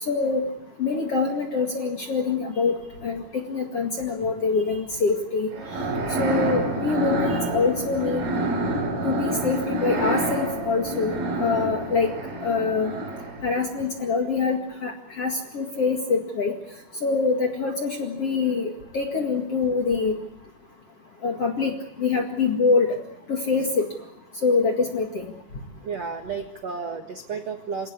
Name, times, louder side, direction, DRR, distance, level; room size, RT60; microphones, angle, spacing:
voice 1, 0.0-0.4 0.8-5.5 6.2-8.2 9.0-12.1 12.4-12.9 13.4-16.5 17.0-20.1 21.2-22.9 23.3-23.9 24.4-25.3, left 4 dB, 45° left, 3 dB, 2.1 m, -25 dB
sound 1, 5.5-13.6, right 1 dB, 50° right, 6.4 m, -27 dB
voice 2, 25.8-27.9, right 5 dB, 70° right, 5 dB, 1.6 m, -32 dB
27.5 x 18.0 x 8.2 m, 0.82 s
omnidirectional pair, 5.6 m